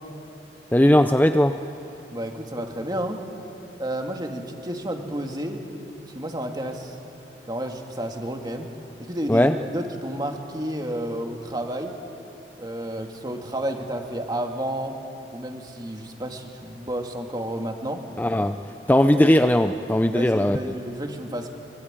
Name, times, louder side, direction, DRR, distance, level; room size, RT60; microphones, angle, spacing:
voice 1, 0.7-1.6 9.3-9.5 18.2-18.6 18.9-20.8, left 1 dB, 10° left, 7 dB, 0.6 m, -18 dB
voice 2, 2.1-3.2 3.8-5.7 6.2-7.0 7.5-8.7 9.0-12.0 12.6-15.0 15.3-18.0 20.1-21.5, right 1 dB, 25° right, 3 dB, 2.1 m, -31 dB
24.5 x 23.5 x 9.0 m, 2.9 s
head